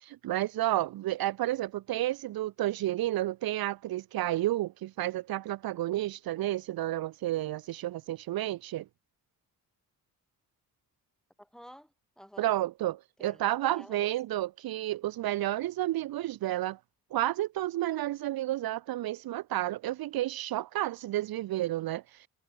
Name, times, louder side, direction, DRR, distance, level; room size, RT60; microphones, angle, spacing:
voice 1, 0.0-8.9 12.4-16.8 17.1-22.3, right 14 dB, 75° right, 0.5 m, -31 dB
voice 2, 11.4-12.5 13.2-14.1, equal, ahead, 5.2 m, -52 dB
wide cardioid pair, 145°, 37 cm